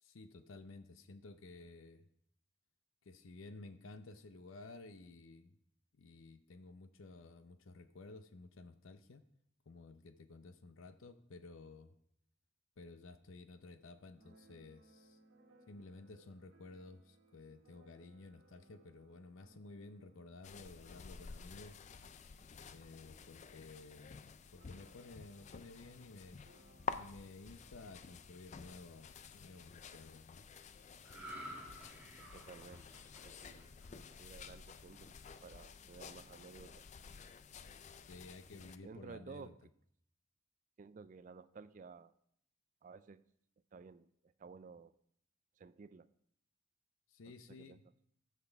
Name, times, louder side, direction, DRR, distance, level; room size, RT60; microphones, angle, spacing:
voice 1, 0.0-2.1 3.0-5.6 5.9-9.2 9.7-11.9 12.8-15.2 15.7-21.8 22.7-26.4 26.9-30.5 38.0-39.5 47.1-47.8, left 3 dB, 80° left, 10 dB, 0.6 m, -54 dB
Keyboard (musical), 14.1-23.7 24.0-24.1 24.3-28.7, right 2 dB, 85° right, 1.6 m, -68 dB
sound 1, 20.4-38.8, left 5 dB, 35° left, 0.4 m, -51 dB
sound 2, 31.0-34.5 34.9-35.2, equal, 10° right, 2.1 m, -52 dB
voice 2, 32.3-32.9 33.2-35.1 35.4-36.9 38.8-39.6 40.8-42.1 42.8-43.2 43.7-44.9 45.6-46.1 47.3-47.8, right 5 dB, 40° right, 15 dB, 0.3 m, -54 dB
14.5 x 5.9 x 3.5 m, 0.69 s
head